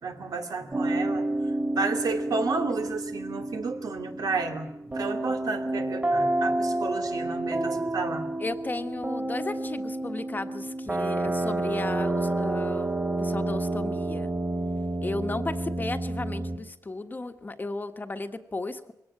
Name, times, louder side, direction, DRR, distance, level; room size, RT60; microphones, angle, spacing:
voice 1, 0.0-4.7 4.9-8.3, right 4 dB, 75° right, 4 dB, 2.6 m, -32 dB
sound 1, 0.7-16.6, right 2 dB, 25° right, 3.2 m, -29 dB
voice 2, 8.4-12.9 13.2-14.3 15.0-18.9, left 2 dB, 30° left, 8 dB, 1.4 m, -34 dB
21.5 x 17.5 x 8.7 m, 0.82 s
wide cardioid pair, 110°, 7 cm